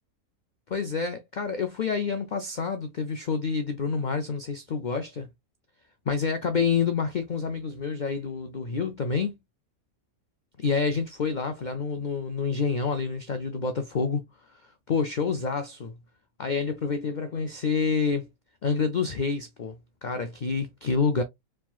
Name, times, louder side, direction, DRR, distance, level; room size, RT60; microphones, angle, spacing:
voice 1, 0.7-5.3 6.1-9.3 10.6-14.2 14.5-16.0 16.4-18.3 18.6-21.2, left 5 dB, 85° left, 0.4 m, -28 dB
4.8 x 3.7 x 2.3 m
omnidirectional pair, 1.5 m